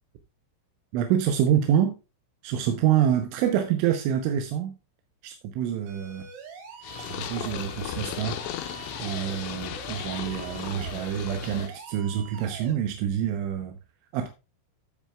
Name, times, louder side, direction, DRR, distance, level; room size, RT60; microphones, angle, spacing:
voice 1, 0.9-1.9 2.4-4.8 5.2-6.3 7.0-8.4 9.0-13.8 14.1-14.3, right 9 dB, 85° right, 3.4 m, -26 dB
sound 1, 5.9-12.7, right 5 dB, 65° right, 4.8 m, -44 dB
Purr, 6.8-11.7, left 11 dB, 85° left, 3.4 m, -36 dB
12.0 x 8.0 x 2.3 m
omnidirectional pair, 5.4 m